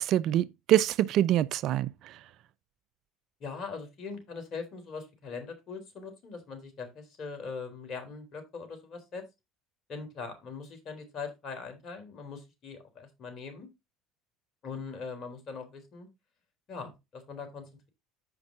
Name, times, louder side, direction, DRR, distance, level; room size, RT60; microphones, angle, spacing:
voice 1, 0.0-2.2, right 12 dB, 55° right, 0.5 m, -25 dB
voice 2, 3.4-9.2 9.9-13.7 14.6-16.1 16.7-17.9, left 5 dB, 45° left, 3.9 m, -41 dB
14.5 x 5.4 x 2.7 m
hypercardioid pair, 70°, 0 cm